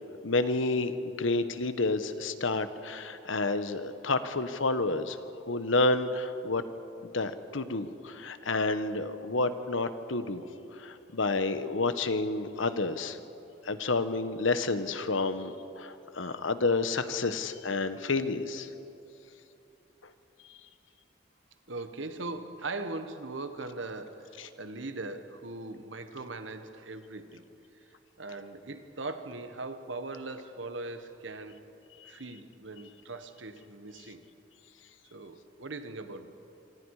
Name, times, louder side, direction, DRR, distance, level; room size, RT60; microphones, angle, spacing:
voice 1, 0.2-5.2 5.5-6.6 7.0-10.4 10.8-13.2 13.7-18.7 24.4-24.5, left 3 dB, 90° left, 11 dB, 1.2 m, -30 dB
voice 2, 21.7-27.4 28.2-31.6 32.0-34.2 35.1-36.3, right 2 dB, 80° right, 8 dB, 1.5 m, -40 dB
26.0 x 25.0 x 4.9 m, 2.8 s
head